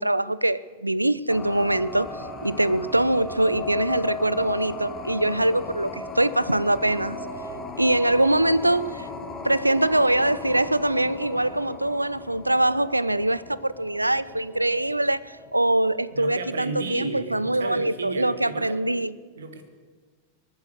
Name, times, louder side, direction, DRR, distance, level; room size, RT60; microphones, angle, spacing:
voice 1, 0.0-7.2 7.8-9.1 9.4-19.1, right 1 dB, 85° right, 0.4 m, -23 dB
sound 1, 1.3-16.3, left 2 dB, 20° left, 2.1 m, -37 dB
voice 2, 16.1-18.9 19.4-19.7, right 4 dB, 65° right, 1.6 m, -34 dB
20.5 x 9.2 x 6.5 m
figure-of-eight pair, 90°, 0 cm